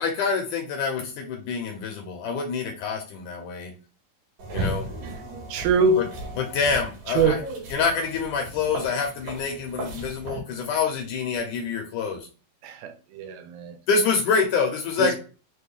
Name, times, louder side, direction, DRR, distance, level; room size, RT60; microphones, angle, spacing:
voice 1, 0.0-3.7 4.5-4.9 6.0-6.1 6.4-7.4 7.7-12.3 13.9-15.1, left 5 dB, 75° left, 1.9 m, -26 dB
sound 1, 4.4-10.4, right 2 dB, 70° right, 3.2 m, -35 dB
voice 2, 5.5-6.1 7.2-7.4 12.6-13.8 15.0-15.1, right 4 dB, 90° right, 2.5 m, -23 dB
6.1 x 2.2 x 3.3 m
omnidirectional pair, 4.0 m